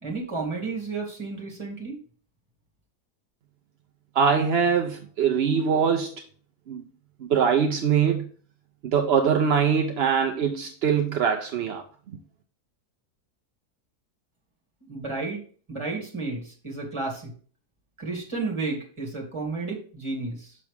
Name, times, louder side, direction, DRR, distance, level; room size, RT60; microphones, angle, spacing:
voice 1, 0.0-2.0 14.9-15.4 15.7-17.3 18.0-20.6, right 3 dB, 20° right, 2.2 m, -32 dB
voice 2, 4.1-6.1 6.7-6.8 7.2-8.3 8.8-11.8, right 7 dB, 60° right, 0.6 m, -23 dB
6.4 x 5.9 x 3.4 m
omnidirectional pair, 1.7 m